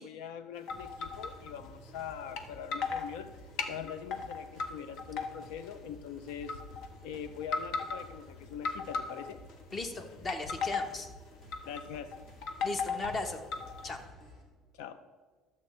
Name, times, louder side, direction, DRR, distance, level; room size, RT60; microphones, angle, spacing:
voice 1, 0.0-3.3 3.7-6.6 7.0-9.4 11.6-12.1 14.7-15.0, left 8 dB, 90° left, 12 dB, 0.5 m, -43 dB
sound 1, 0.7-1.5 2.4-2.5 2.7-3.1 3.6-4.7 5.0-5.7 6.4-6.9 7.4-8.1 8.6-9.5 10.1-11.0 11.5-11.8 12.1-14.0, left 5 dB, 70° left, 0.9 m, -36 dB
sound 2, 0.7-14.4, left 1 dB, 50° left, 2.4 m, -53 dB
voice 2, 9.7-11.1 12.6-13.5 13.8-14.0, left 2 dB, 30° left, 7 dB, 1.0 m, -37 dB
12.0 x 7.4 x 4.3 m, 1.4 s
cardioid pair, 135°, 0 cm